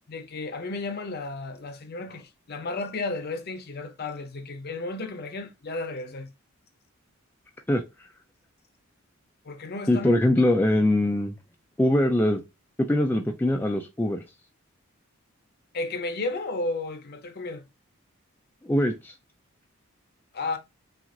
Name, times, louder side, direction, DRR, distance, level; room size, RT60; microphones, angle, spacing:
voice 1, 0.1-6.3 9.4-10.2 15.7-17.6 20.3-20.6, left 3 dB, 50° left, 0.7 m, -33 dB
voice 2, 9.9-11.4 11.8-12.4 12.8-14.2 18.6-19.1, left 1 dB, 10° left, 0.3 m, -22 dB
5.8 x 2.4 x 2.5 m
head